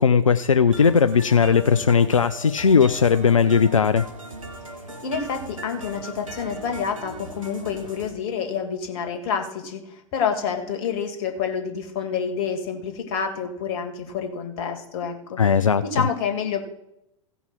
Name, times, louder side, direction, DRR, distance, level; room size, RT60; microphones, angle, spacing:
voice 1, 0.0-4.1 15.4-16.0, left 6 dB, 90° left, 11 dB, 0.4 m, -18 dB
sound 1, 0.7-8.1, right 1 dB, 90° right, 1.7 m, -39 dB
voice 2, 5.0-15.4 15.8-16.6, left 6 dB, 50° left, 5 dB, 2.0 m, -28 dB
16.0 x 5.5 x 6.0 m, 0.82 s
figure-of-eight pair, 90°, 16 cm